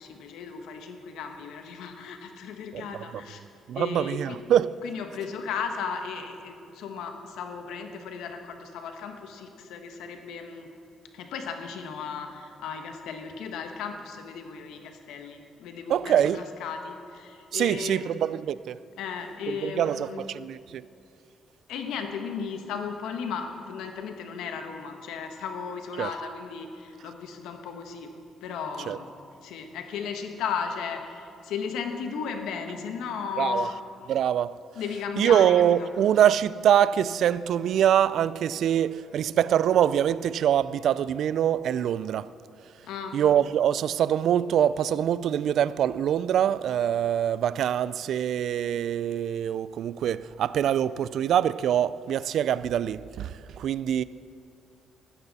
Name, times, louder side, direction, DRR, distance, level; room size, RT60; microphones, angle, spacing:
voice 1, 0.0-3.4 3.7-4.4 4.8-10.7 11.1-18.1 19.0-20.2 21.7-28.1 28.4-29.1 29.4-33.8 34.7-35.9 42.8-43.2, left 6 dB, 90° left, 1.2 m, -35 dB
voice 2, 2.7-3.0 3.7-4.7 15.9-16.4 17.5-18.8 19.5-20.8 26.0-26.1 28.9-29.0 33.4-33.7 34.1-34.6 35.2-42.3 43.1-54.0, right 10 dB, 70° right, 0.3 m, -24 dB
14.5 x 12.5 x 4.2 m
cardioid pair, 90°, 0 cm